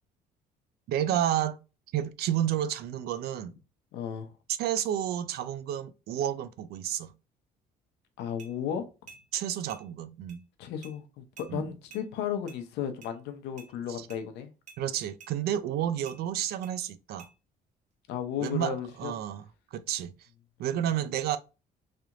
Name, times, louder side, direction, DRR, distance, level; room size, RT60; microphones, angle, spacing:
voice 1, 0.9-1.6 1.9-3.5 4.6-7.1 9.3-10.4 11.5-11.7 13.9-14.1 14.8-17.3 18.4-19.4 19.7-20.1 20.6-21.4, right 11 dB, 70° right, 0.4 m, -30 dB
voice 2, 3.9-4.3 8.2-8.8 10.6-14.5 18.1-19.1, left 8 dB, 85° left, 0.7 m, -34 dB
sound 1, 8.4-8.5 9.1-9.2 9.7-9.8 10.3-10.4 10.8-11.0 11.4-11.5 11.9-12.1 12.5-12.6 13.0-13.1 13.6-13.7 14.1-14.2 14.7-14.8 15.2-15.3 16.1-16.2 16.6-16.8 17.2-17.3, right 5 dB, 45° right, 1.0 m, -50 dB
3.3 x 2.9 x 2.4 m
cardioid pair, 110°, 17 cm